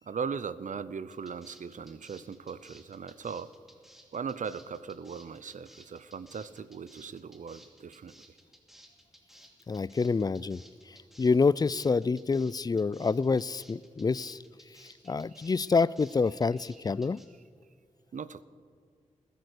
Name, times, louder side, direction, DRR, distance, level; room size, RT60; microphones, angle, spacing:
voice 1, 0.0-3.5 4.1-8.1 15.3-15.5 18.1-18.4, right 6 dB, 70° right, 16 dB, 0.6 m, -38 dB
sound 1, 1.1-17.3, equal, ahead, 2.7 m, -56 dB
voice 2, 9.7-10.6 11.2-14.4 15.0-17.2, left 4 dB, 30° left, 22 dB, 0.3 m, -27 dB
20.0 x 10.5 x 6.7 m, 2.1 s
cardioid pair, 65°, 14 cm